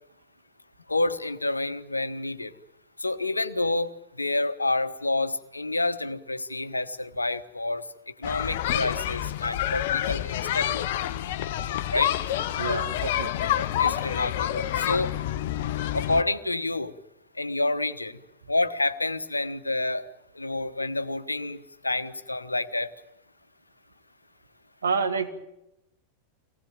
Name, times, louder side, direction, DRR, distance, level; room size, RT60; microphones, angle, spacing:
voice 1, 0.9-2.5 3.0-10.9 11.9-12.1 12.7-12.8 13.6-15.1 15.9-16.9 17.3-20.0 20.3-22.9, left 2 dB, 80° left, 1.2 m, -29 dB
sound 1, 8.2-16.2, left 11 dB, 55° left, 0.9 m, -28 dB
voice 2, 12.5-13.5 24.8-25.3, right 5 dB, 70° right, 2.3 m, -28 dB
25.0 x 19.5 x 9.0 m
figure-of-eight pair, 90°, 0 cm